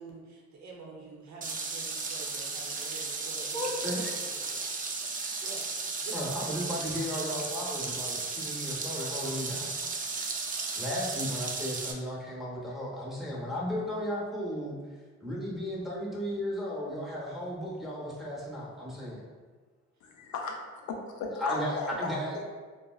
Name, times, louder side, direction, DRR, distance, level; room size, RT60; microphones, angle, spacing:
voice 1, 0.0-4.6 5.4-5.6 6.0-6.5, right 3 dB, 65° right, -1 dB, 0.7 m, -47 dB
sound 1, 1.4-11.9, right 4 dB, 30° right, 0.3 m, -35 dB
voice 2, 3.4-4.3 6.1-9.8 10.7-14.8 15.2-19.2 21.4-22.4, equal, ahead, -5 dB, 0.8 m, -35 dB
voice 3, 20.0-20.6 20.8-22.4, left 3 dB, 70° left, 2 dB, 0.6 m, -36 dB
3.8 x 2.0 x 2.3 m, 1.4 s
cardioid pair, 90°, 30 cm